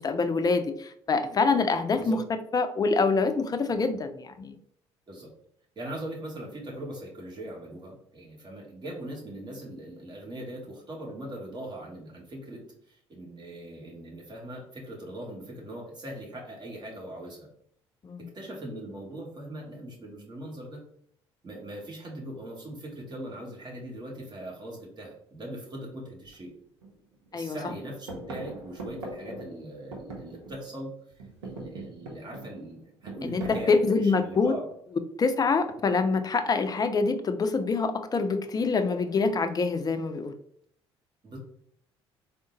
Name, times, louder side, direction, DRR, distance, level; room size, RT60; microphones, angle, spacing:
voice 1, 0.0-2.2 2.5-4.6 18.0-18.3 27.3-27.6 33.3-33.4 33.7-34.5 35.2-40.3, left 4 dB, 25° left, 8 dB, 0.5 m, -25 dB
voice 2, 5.7-17.5 18.2-20.8 21.4-26.5 27.3-30.9 31.4-34.6 41.2-41.4, right 1 dB, 30° right, -1 dB, 1.4 m, -40 dB
sound 1, 26.2-26.3 26.8-27.4 27.6-30.8 31.1-34.7 35.7-36.2, right 2 dB, 75° right, 0.8 m, -41 dB
3.7 x 2.1 x 3.8 m, 0.66 s
figure-of-eight pair, 55°, 14 cm